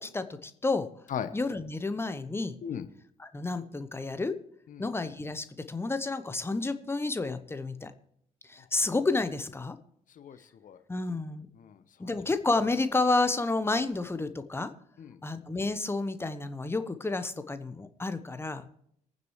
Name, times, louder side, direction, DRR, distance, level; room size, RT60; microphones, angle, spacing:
voice 1, 0.0-0.9 1.3-2.6 3.2-4.4 4.8-7.9 8.5-9.8 10.9-11.5 12.0-14.7 15.2-18.7, left 3 dB, 15° left, 11 dB, 1.0 m, -30 dB
voice 2, 10.2-10.8 11.6-12.2 15.0-15.2, left 8 dB, 45° left, 12 dB, 1.0 m, -38 dB
25.5 x 9.3 x 3.2 m, 0.70 s
figure-of-eight pair, 50°, 19 cm